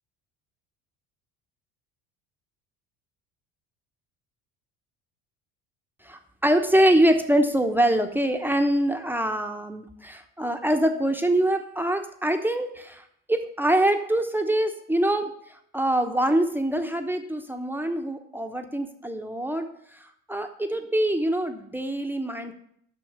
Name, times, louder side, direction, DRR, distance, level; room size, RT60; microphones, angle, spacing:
voice 1, 6.0-22.5, right 1 dB, 5° right, 5 dB, 0.9 m, -24 dB
6.3 x 6.2 x 6.4 m, 0.69 s
hypercardioid pair, 65°, 46 cm